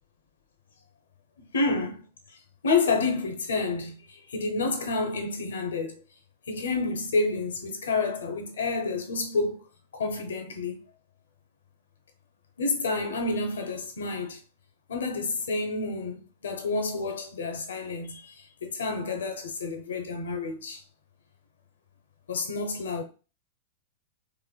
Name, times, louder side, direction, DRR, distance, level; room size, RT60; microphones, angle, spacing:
voice 1, 1.5-2.0 2.6-6.0 6.5-9.6 9.9-10.8 12.6-14.4 14.9-20.8 22.3-23.0, left 3 dB, 70° left, 0.7 m, -29 dB
3.2 x 3.2 x 2.2 m
figure-of-eight pair, 100°, 0 cm